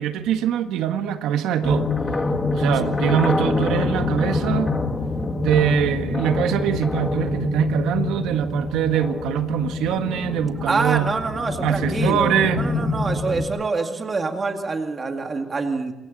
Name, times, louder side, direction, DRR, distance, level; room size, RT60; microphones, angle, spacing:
voice 1, 0.0-1.9 2.5-4.7 5.4-11.1 11.6-12.7, right 10 dB, 80° right, 1.7 m, -23 dB
sound 1, 1.6-13.4, left 3 dB, 15° left, 2.1 m, -25 dB
voice 2, 2.6-2.9 10.6-15.9, right 4 dB, 20° right, 2.2 m, -26 dB
28.0 x 25.0 x 4.2 m
cardioid pair, 175°, 0 cm